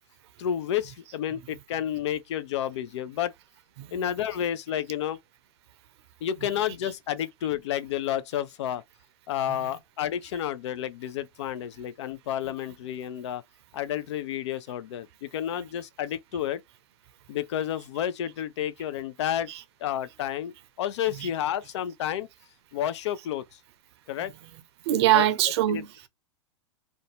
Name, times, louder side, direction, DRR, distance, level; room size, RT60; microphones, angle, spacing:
voice 1, 0.4-3.3 3.9-5.2 6.2-8.8 9.3-13.4 13.7-16.6 17.3-19.5 19.8-22.3 22.7-23.6 24.1-24.3 25.1-25.3 25.7-26.1, left 10 dB, 65° left, 0.4 m, -30 dB
voice 2, 3.8-4.1 6.4-6.6 6.9-7.0 19.5-19.6 21.1-21.3 23.2-23.3 24.2-25.9, right 13 dB, 60° right, 0.5 m, -26 dB
2.6 x 2.2 x 2.9 m
hypercardioid pair, 110°, 16 cm